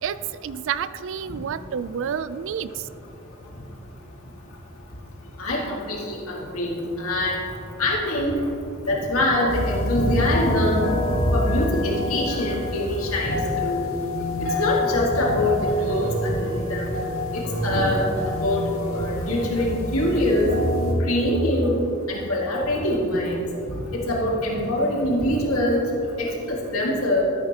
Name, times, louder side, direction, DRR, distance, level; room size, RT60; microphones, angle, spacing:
voice 1, 0.0-2.9, right 8 dB, 65° right, 15 dB, 0.4 m, -29 dB
voice 2, 5.4-7.4 7.8-8.3 8.9-10.9 11.3-13.9 14.6-16.9 17.3-18.6 18.9-20.5 21.1-21.8 22.1-23.4 23.7-25.8 26.2-27.2, left 1 dB, 90° left, -3 dB, 2.1 m, -24 dB
sound 1, 9.5-20.9, left 1 dB, 65° left, 2.4 m, -27 dB
13.0 x 9.4 x 2.9 m, 2.8 s
head